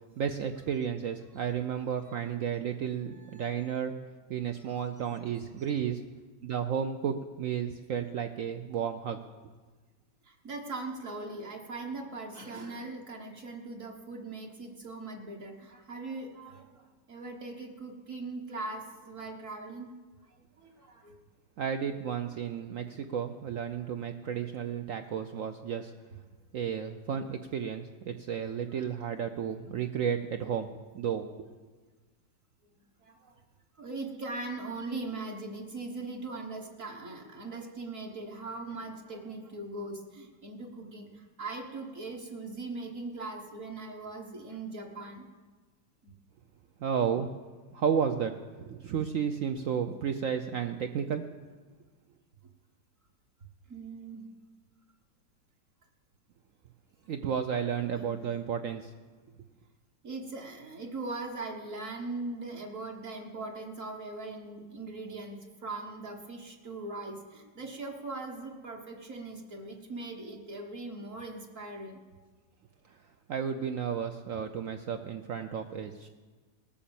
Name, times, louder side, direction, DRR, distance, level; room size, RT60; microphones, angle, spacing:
voice 1, 0.2-3.9 4.3-6.0 6.4-9.2 21.6-25.9 26.5-31.3 46.8-47.3 47.7-48.3 48.6-51.3 57.1-58.9 73.3-76.1, right 7 dB, 80° right, 7 dB, 0.7 m, -32 dB
voice 2, 3.1-3.6 4.7-4.8 5.1-5.2 10.2-19.9 20.2-21.2 28.7-28.8 33.0-33.4 33.8-45.3 46.0-46.1 53.7-54.3 57.9-58.2 60.0-72.0, right 3 dB, 45° right, 0 dB, 1.5 m, -40 dB
18.5 x 7.2 x 7.0 m, 1.4 s
omnidirectional pair, 2.0 m